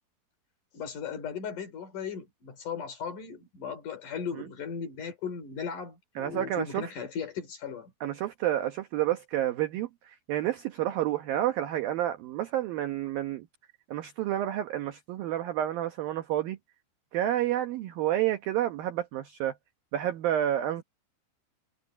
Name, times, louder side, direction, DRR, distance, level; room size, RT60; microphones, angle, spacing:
voice 1, 0.7-7.9, left 6 dB, 45° left, 4.4 m, -37 dB
voice 2, 6.2-6.8 8.0-13.5 13.9-16.6 17.1-19.5 19.9-20.8, right 12 dB, 75° right, 2.2 m, -29 dB
omnidirectional pair, 5.5 m